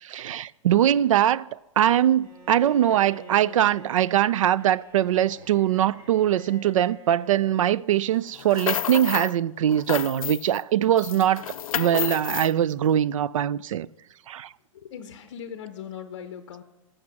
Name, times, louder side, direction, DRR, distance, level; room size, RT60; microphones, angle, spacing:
voice 1, 0.0-11.5 11.7-13.9 14.3-14.5, right 11 dB, 70° right, 0.4 m, -22 dB
Bowed string instrument, 2.2-7.7, right 2 dB, 20° right, 1.1 m, -48 dB
sound 1, 8.3-9.4 9.7-10.6 11.0-12.5, left 11 dB, 85° left, 0.4 m, -31 dB
voice 2, 14.7-16.6, left 8 dB, 40° left, 0.7 m, -39 dB
14.0 x 6.5 x 5.9 m
hypercardioid pair, 175°, 17 cm